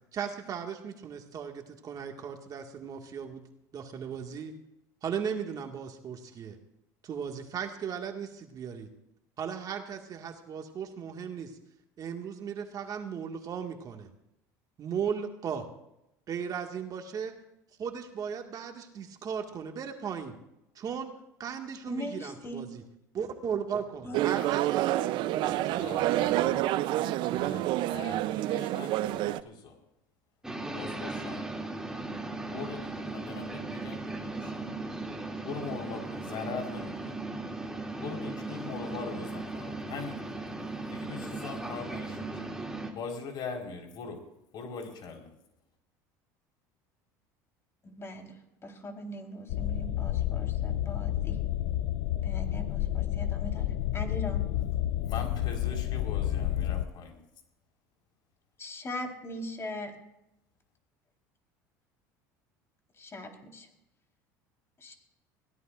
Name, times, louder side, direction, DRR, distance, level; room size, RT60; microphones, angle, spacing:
voice 1, 0.1-3.4 3.7-4.5 5.0-6.6 7.0-8.9 9.4-11.6 12.0-14.1 14.8-15.7 16.3-17.4 17.8-20.3 20.8-21.1 21.4-22.8 23.1-26.1 27.2-27.7, right 7 dB, 45° right, 3 dB, 1.9 m, -37 dB
voice 2, 21.9-22.6 24.0-24.2 47.8-48.3 48.6-51.4 52.2-53.7 53.9-54.5 58.6-59.9 63.0-63.7 64.8-64.9, equal, 30° left, 3 dB, 4.0 m, -40 dB
sound 1, 24.1-29.4, right 15 dB, 60° right, 0.6 m, -28 dB
voice 3, 25.4-26.6 27.3-29.8 30.7-31.5 32.5-34.7 35.4-37.2 38.0-40.2 40.9-42.4 42.9-44.2 44.5-45.3 55.0-57.2, left 5 dB, 55° left, 2 dB, 4.4 m, -41 dB
sound 2, 30.4-42.9, right 2 dB, 5° right, 2.6 m, -37 dB
sound 3, 49.5-56.8, left 13 dB, 75° left, 0.6 m, -30 dB
22.0 x 16.5 x 2.6 m, 0.86 s
supercardioid pair, 90°, 9 cm